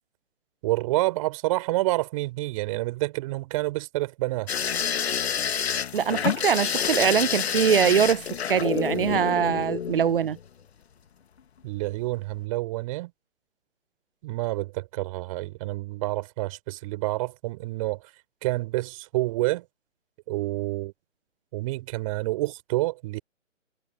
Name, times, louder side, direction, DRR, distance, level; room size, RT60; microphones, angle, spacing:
voice 1, 0.6-4.5 11.6-13.1 14.2-18.0 18.4-19.6 20.3-20.9 21.5-23.2, right 19 dB, 25° right, 4.1 m, -28 dB
sound 1, 4.5-10.5 11.8-12.1 12.4-12.5, left 8 dB, 55° left, 1.8 m, -28 dB
voice 2, 5.9-8.2 8.5-10.4, right 8 dB, 45° right, 0.8 m, -22 dB
figure-of-eight pair, 150°, 38 cm